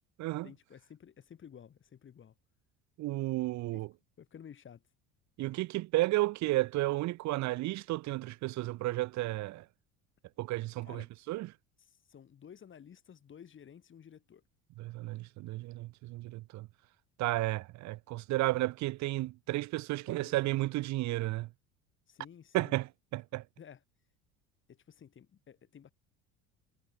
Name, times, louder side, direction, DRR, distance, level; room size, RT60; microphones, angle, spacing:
voice 1, 0.4-2.3 3.7-3.8 4.2-4.8 10.8-11.1 11.8-14.4 20.0-20.6 22.1-22.8 23.6-23.8 24.7-25.9, left 8 dB, 40° left, 8.0 m, -53 dB
voice 2, 3.0-3.9 5.4-9.6 10.4-11.0 11.3-11.5 14.8-16.7 17.2-21.5 22.5-22.9 23.1-23.4, right 18 dB, 60° right, 1.4 m, -32 dB
supercardioid pair, 100°, 32 cm